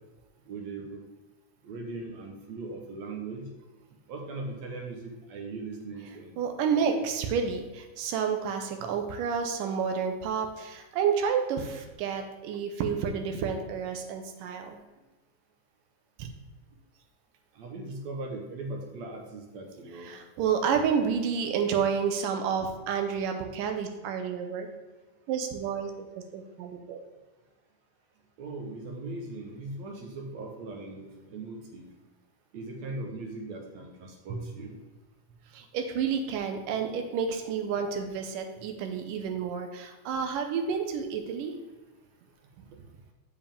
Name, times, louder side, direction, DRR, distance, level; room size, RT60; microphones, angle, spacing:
voice 1, 0.5-1.0 1.6-3.5 4.1-6.4 17.5-20.1 28.4-31.9 32.5-34.8 42.6-42.8, right 3 dB, 70° right, 1 dB, 2.0 m, -39 dB
voice 2, 6.4-14.8 16.2-16.3 20.0-24.7 25.3-25.9 26.3-27.0 35.5-41.5, right 6 dB, 85° right, 5 dB, 2.5 m, -30 dB
7.4 x 7.3 x 3.5 m, 1.2 s
omnidirectional pair, 3.7 m